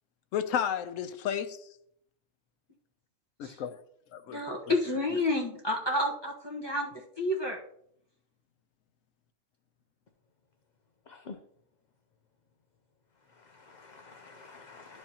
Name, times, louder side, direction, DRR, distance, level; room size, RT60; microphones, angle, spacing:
voice 1, 0.3-1.7 3.4-3.8 4.1-4.7, left 9 dB, 80° left, 1.1 m, -33 dB
voice 2, 4.3-6.9 7.2-7.6, left 1 dB, 20° left, 1.2 m, -30 dB
voice 3, 11.1-11.4 13.3-15.0, left 4 dB, 50° left, 0.6 m, -49 dB
12.5 x 4.7 x 2.9 m
omnidirectional pair, 1.3 m